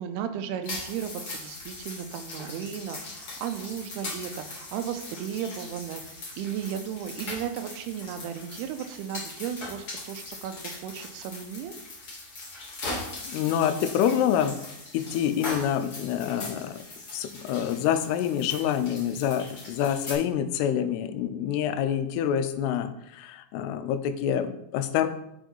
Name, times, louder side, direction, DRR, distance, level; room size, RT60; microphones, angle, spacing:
voice 1, 0.0-11.8, right 9 dB, 85° right, 8 dB, 2.6 m, -35 dB
sound 1, 0.6-20.1, left 2 dB, 55° left, 1.0 m, -40 dB
voice 2, 13.3-14.6 14.9-16.8 17.1-25.1, left 9 dB, 85° left, 10 dB, 2.6 m, -27 dB
6.8 x 4.7 x 4.5 m, 0.79 s
omnidirectional pair, 4.6 m